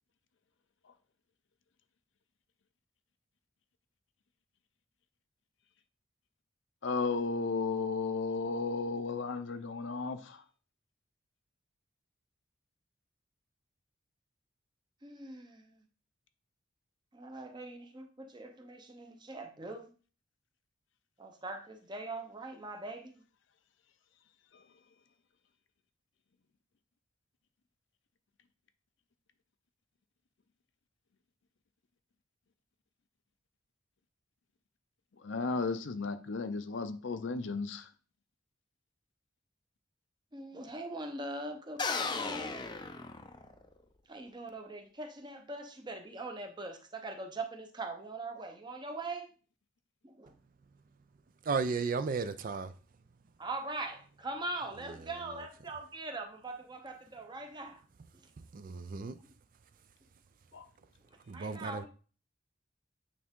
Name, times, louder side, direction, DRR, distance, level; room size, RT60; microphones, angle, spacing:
voice 1, 6.8-10.4 24.5-24.6 35.2-37.9 60.5-60.6, left 4 dB, 65° left, 0.6 m, -34 dB
voice 2, 15.0-15.8 17.1-19.9 21.2-23.2 40.3-42.7 44.1-49.3 50.0-50.3 53.4-57.8 61.3-61.9, right 2 dB, 20° right, 0.7 m, -42 dB
sound 1, 41.8-43.7, left 4 dB, 20° left, 0.5 m, -36 dB
voice 3, 51.5-52.7 58.5-59.1 61.3-61.8, right 4 dB, 45° right, 0.4 m, -34 dB
8.6 x 3.4 x 3.7 m
head